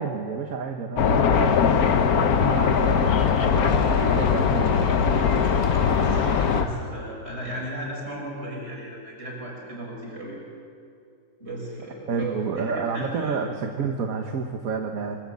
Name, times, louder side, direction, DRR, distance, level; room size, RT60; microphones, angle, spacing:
voice 1, 0.0-5.5 12.1-15.2, right 5 dB, 70° right, 3 dB, 1.7 m, -30 dB
sound 1, 1.0-6.7, left 7 dB, 85° left, 1.4 m, -21 dB
Truck, 1.3-6.6, left 1 dB, 30° left, 2.0 m, -32 dB
voice 2, 6.5-10.4 11.4-13.4, right 1 dB, 45° right, -3 dB, 7.0 m, -35 dB
25.5 x 13.0 x 8.5 m, 2.5 s
omnidirectional pair, 1.5 m